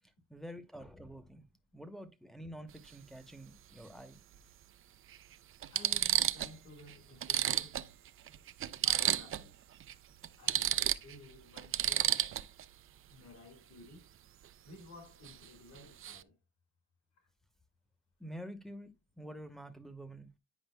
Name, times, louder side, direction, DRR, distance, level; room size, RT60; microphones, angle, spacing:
voice 1, 0.3-1.4 1.7-4.2 18.2-20.3, equal, ahead, 0.9 m, -48 dB
sound 1, 2.7-2.9 4.4-4.5 5.1-5.2 5.6-6.6 6.9-7.0 7.2-9.5 9.8-9.9 10.2-12.6 15.2-15.5 15.7-16.2, right 11 dB, 45° right, 0.4 m, -32 dB
voice 2, 5.7-7.8 8.7-9.6 10.4-12.1 13.1-14.1 14.6-16.3, left 2 dB, 65° left, 2.0 m, -54 dB
9.2 x 4.9 x 2.3 m
cardioid pair, 90°, 30 cm